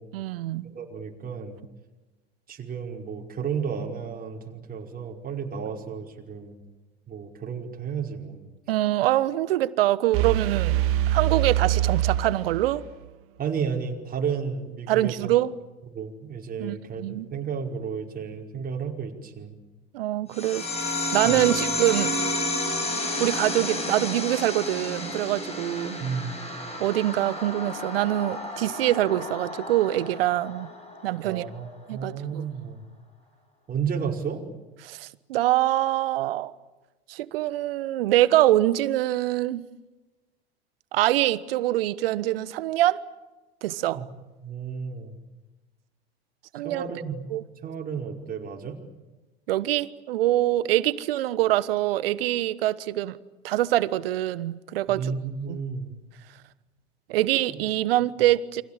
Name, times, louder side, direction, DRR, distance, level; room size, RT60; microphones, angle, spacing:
voice 1, 0.1-0.7 8.7-10.8 11.1-12.8 14.9-15.5 16.6-17.3 19.9-20.7 21.1-22.1 23.2-26.0 26.8-30.7 31.0-31.4 31.9-32.4 34.8-36.5 37.1-39.7 40.9-43.0 43.6-44.0 46.5-46.8 47.3-47.4 49.5-53.2 53.4-55.1 55.5-55.6 57.1-58.6, right 14 dB, 70° right, 1.3 m, -24 dB
voice 2, 0.7-1.6 2.5-6.6 7.1-8.4 13.4-15.3 15.9-19.5 21.2-21.5 26.0-26.4 31.2-32.8 33.7-34.4 44.0-44.1 44.4-45.1 46.6-47.2 47.6-48.8 55.0-55.9 57.5-57.6, right 6 dB, 30° right, 5.2 m, -32 dB
sound 1, 10.1-13.0, right 12 dB, 45° right, 2.1 m, -24 dB
sound 2, 20.3-31.3, left 2 dB, 20° left, 7.0 m, -31 dB
29.5 x 25.5 x 7.6 m
hypercardioid pair, 80°, 31 cm